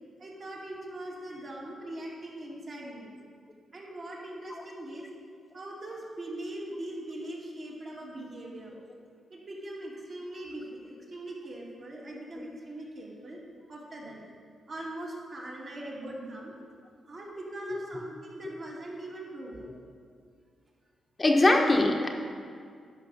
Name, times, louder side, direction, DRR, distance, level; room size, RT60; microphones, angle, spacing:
voice 1, 0.2-3.1 3.7-5.1 5.5-8.7 9.3-13.4 13.7-14.2 14.7-16.5 17.0-19.6, right 1 dB, 50° right, -5 dB, 2.7 m, -41 dB
voice 2, 21.2-22.1, left 2 dB, 30° left, 1 dB, 1.1 m, -22 dB
11.5 x 5.2 x 6.6 m, 2.1 s
cardioid pair, 80°, 0 cm